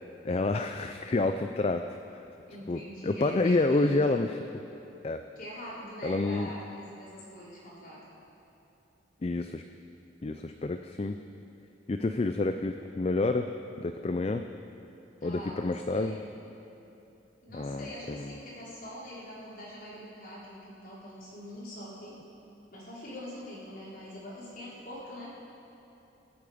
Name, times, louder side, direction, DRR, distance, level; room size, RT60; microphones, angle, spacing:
voice 1, 0.2-1.8 2.7-4.4 5.0-5.2 6.0-6.5 9.2-9.6 10.2-11.2 11.9-13.5 13.8-14.5 15.2-16.2 17.5-18.3, left 2 dB, 30° left, 7 dB, 0.4 m, -28 dB
voice 2, 2.5-4.2 5.4-8.0 15.2-16.2 17.4-22.2 22.7-25.4, equal, 45° left, -7 dB, 4.1 m, -43 dB
24.0 x 8.6 x 5.1 m, 2.9 s
head